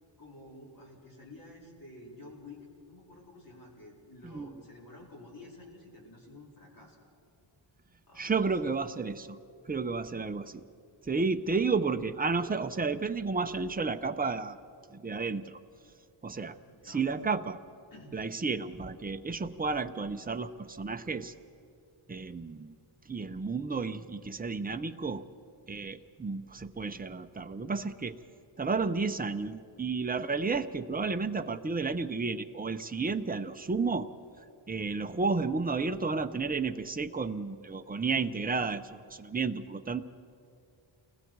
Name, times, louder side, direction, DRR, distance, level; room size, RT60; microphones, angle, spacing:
voice 1, 0.2-7.0 8.1-8.4 16.7-17.1 17.9-18.2, left 2 dB, 40° left, -2 dB, 4.1 m, -51 dB
voice 2, 4.2-4.6 8.2-9.4 9.7-10.6 11.0-14.6 14.9-15.6 16.2-16.6 16.8-17.6 18.1-21.3 22.1-22.7 23.1-25.2 25.7-28.2 28.6-34.1 34.7-40.0, right 4 dB, 20° right, 8 dB, 0.6 m, -32 dB
28.5 x 20.5 x 4.7 m, 2.5 s
wide cardioid pair, 155°, 49 cm